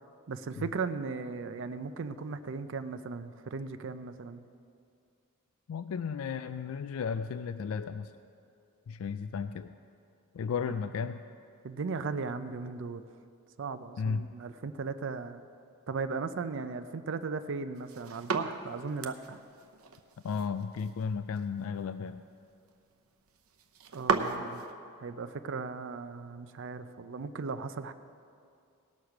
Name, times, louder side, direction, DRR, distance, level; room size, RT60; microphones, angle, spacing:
voice 1, 0.3-4.5 10.7-10.8 11.6-13.0 13.6-15.5 15.9-19.4 23.9-24.7 25.0-27.9, right 4 dB, 60° right, 11 dB, 0.5 m, -37 dB
voice 2, 5.7-8.1 8.9-9.7 10.3-11.2 14.0-14.3 20.2-22.2, left 6 dB, 75° left, 11 dB, 0.3 m, -34 dB
sound 1, 17.7-24.7, right 4 dB, 90° right, 0.8 m, -37 dB
18.5 x 6.5 x 5.8 m, 2.5 s
head